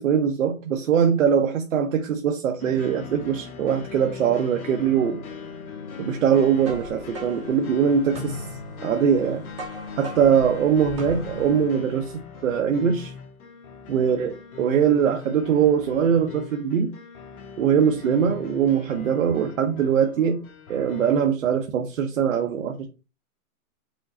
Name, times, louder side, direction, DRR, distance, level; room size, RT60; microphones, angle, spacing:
voice 1, 0.0-5.2 6.0-8.4 8.8-9.4 10.0-12.1 12.4-13.1 13.9-14.3 14.6-16.9 17.6-20.4 20.7-22.9, right 7 dB, 60° right, 3 dB, 0.8 m, -22 dB
sound 1, 2.6-21.3, left 5 dB, 75° left, 1.1 m, -40 dB
sound 2, 6.2-11.7, left 1 dB, 20° right, 0.7 m, -38 dB
5.0 x 2.2 x 3.7 m, 0.30 s
hypercardioid pair, 165°, 45 cm